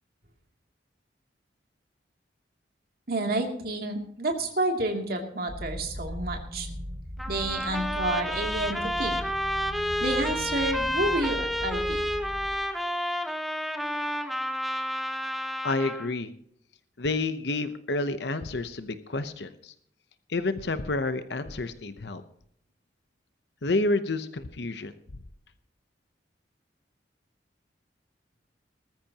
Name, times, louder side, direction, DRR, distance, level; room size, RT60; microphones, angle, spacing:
voice 1, 3.1-6.7 7.3-9.2 10.0-12.0, right 2 dB, 55° right, 2 dB, 2.7 m, -29 dB
sound 1, 5.5-12.6, left 1 dB, 20° right, 4.8 m, -38 dB
Trumpet, 7.2-16.1, equal, ahead, 1.0 m, -30 dB
voice 2, 15.6-16.3 17.0-19.7 20.3-22.2 23.6-24.9, left 2 dB, 65° left, 10 dB, 0.8 m, -29 dB
20.0 x 13.5 x 2.9 m, 0.70 s
head